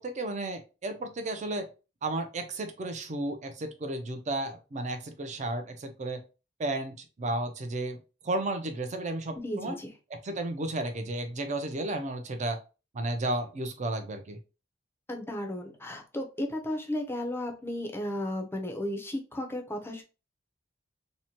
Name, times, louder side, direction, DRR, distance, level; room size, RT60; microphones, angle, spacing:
voice 1, 0.0-1.7 2.0-6.2 6.6-8.0 8.2-9.8 10.2-12.6 12.9-14.4, right 2 dB, 40° right, 6 dB, 0.5 m, -33 dB
voice 2, 9.4-9.9 15.1-20.0, left 1 dB, 10° left, 3 dB, 0.5 m, -34 dB
2.7 x 2.1 x 2.8 m, 0.31 s
head